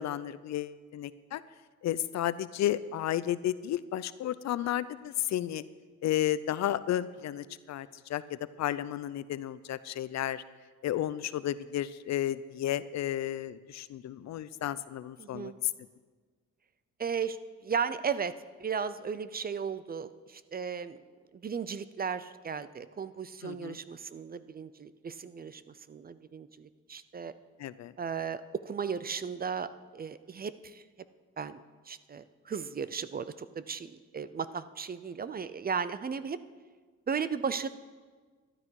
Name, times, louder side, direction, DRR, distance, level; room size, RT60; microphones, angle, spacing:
voice 1, 0.0-1.4 1.8-5.6 6.0-10.4 10.8-15.5 23.4-23.8 27.6-27.9, left 12 dB, 65° left, 16 dB, 0.6 m, -33 dB
voice 2, 15.2-15.5 17.0-18.3 18.6-21.0 21.3-27.3 28.0-30.8 31.4-36.4 37.1-37.7, right 6 dB, 30° right, 14 dB, 0.5 m, -35 dB
12.5 x 12.0 x 4.7 m, 1.5 s
cardioid pair, 90°, 30 cm